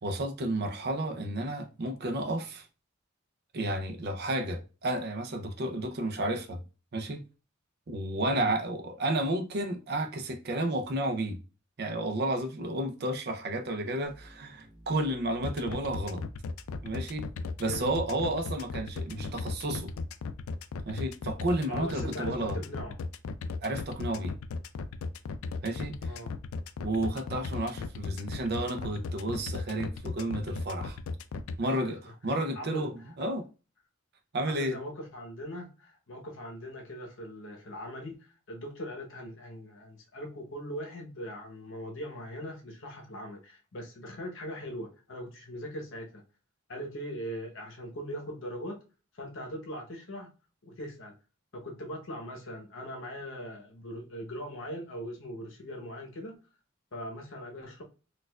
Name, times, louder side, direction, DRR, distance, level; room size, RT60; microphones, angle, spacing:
voice 1, 0.0-2.7 3.5-6.6 6.9-7.2 7.9-11.4 11.8-16.2 16.8-17.3 17.6-19.9 20.8-22.6 23.6-24.3 25.6-26.2 26.8-31.0 31.6-33.5 34.3-34.8, right 1 dB, 50° right, 0.5 m, -32 dB
sound 1, 14.0-20.2, right 1 dB, ahead, 1.4 m, -53 dB
sound 2, 15.4-31.5, left 4 dB, 80° left, 0.3 m, -36 dB
voice 2, 21.7-23.0 26.0-26.3 31.6-31.9 32.5-32.9 33.2-33.3 34.5-46.2 46.7-48.8 49.1-50.3 50.6-51.1 51.5-56.4 56.9-57.8, equal, 65° left, 0.9 m, -40 dB
4.2 x 2.4 x 2.2 m
head